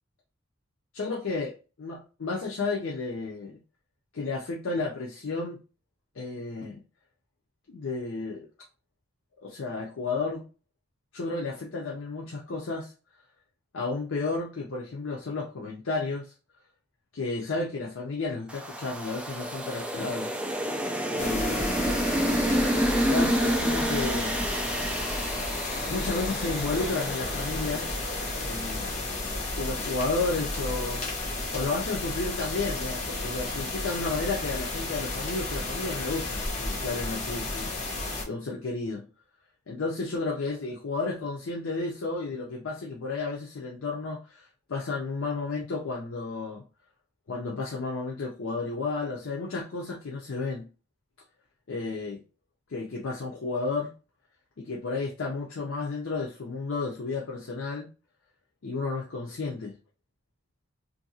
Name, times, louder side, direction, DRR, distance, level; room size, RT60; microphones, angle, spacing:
voice 1, 0.9-3.6 4.1-5.6 6.2-6.8 7.7-8.5 9.4-10.5 11.1-12.9 13.7-16.3 17.1-20.3 21.2-22.0 22.5-24.3 25.9-27.9 28.4-29.0 29.6-31.1 31.5-37.7 38.3-39.0 39.7-46.6 47.3-50.7 51.7-52.2 52.7-53.9 54.6-57.9 58.6-59.7, left 3 dB, 80° left, 0.6 m, -32 dB
sound 1, 18.5-28.8, equal, 5° right, 0.4 m, -29 dB
sound 2, 21.2-38.2, left 2 dB, 35° left, 0.8 m, -32 dB
2.7 x 2.6 x 2.7 m
head